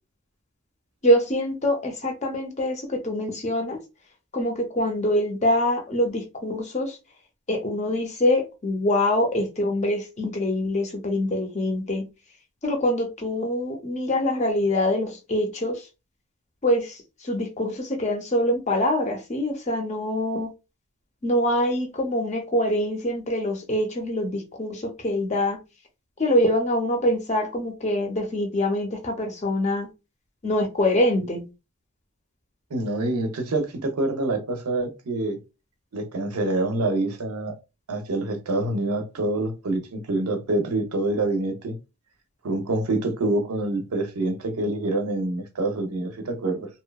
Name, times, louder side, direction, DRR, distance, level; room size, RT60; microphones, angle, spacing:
voice 1, 1.0-3.8 4.3-7.0 7.5-12.0 12.6-15.8 16.6-20.5 21.2-25.6 26.2-29.9 30.4-31.5, left 1 dB, 30° left, 0.5 m, -24 dB
voice 2, 32.7-35.4 35.9-37.6 37.9-41.7 42.4-46.7, right 2 dB, 85° right, 0.6 m, -26 dB
2.7 x 2.1 x 2.2 m
head